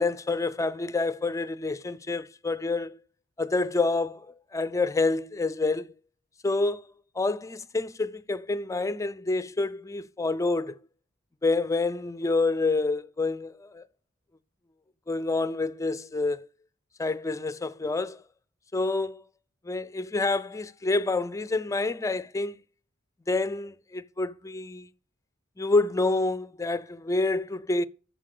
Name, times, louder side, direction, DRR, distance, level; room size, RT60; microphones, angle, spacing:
voice 1, 0.0-3.0 3.4-5.9 6.4-10.8 11.4-13.9 15.1-16.5 17.0-18.2 18.7-19.2 19.6-22.6 23.3-24.9 25.6-27.9, left 3 dB, 15° left, 0.4 m, -28 dB
7.5 x 6.6 x 6.6 m
head